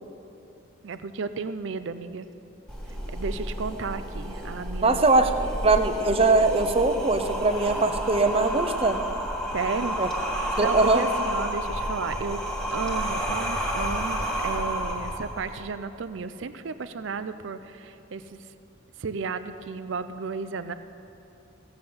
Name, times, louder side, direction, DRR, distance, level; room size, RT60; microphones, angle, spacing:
voice 1, 0.8-2.3 3.1-5.1 5.4-5.5 9.5-10.0 10.6-12.4 12.7-18.5 19.0-20.7, right 4 dB, 65° right, 11 dB, 0.5 m, -33 dB
sound 1, 2.7-15.7, right 1 dB, 5° left, 1.4 m, -30 dB
voice 2, 4.8-5.3 5.6-9.0 10.0-10.1 10.6-11.0, right 3 dB, 30° right, 7 dB, 0.7 m, -21 dB
16.0 x 7.1 x 7.8 m, 2.8 s
head